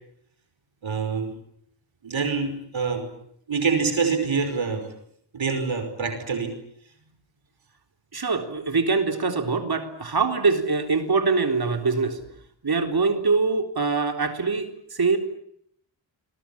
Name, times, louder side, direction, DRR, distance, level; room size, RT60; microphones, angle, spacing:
voice 1, 0.8-1.3 2.0-3.0 3.5-4.8 5.3-6.5, right 5 dB, 85° right, 7 dB, 5.5 m, -25 dB
voice 2, 8.1-12.2 12.6-15.2, right 4 dB, 55° right, 5 dB, 3.8 m, -23 dB
28.0 x 22.5 x 8.7 m, 0.71 s
wide cardioid pair, 80°, 45 cm